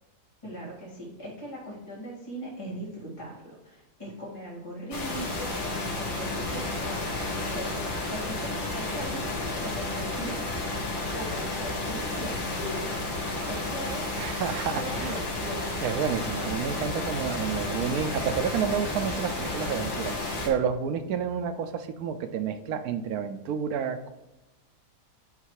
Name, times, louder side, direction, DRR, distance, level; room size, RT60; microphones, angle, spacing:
voice 1, 0.4-10.5 11.1-13.1 13.4-14.2 14.7-15.8, right 1 dB, 20° left, -6 dB, 1.9 m, -39 dB
sound 1, 4.9-20.5, left 2 dB, 90° left, 2.0 m, -32 dB
voice 2, 14.2-15.3 15.8-20.1 20.4-24.1, right 7 dB, 75° right, 9 dB, 1.0 m, -30 dB
9.5 x 3.2 x 4.6 m, 1.0 s
omnidirectional pair, 1.7 m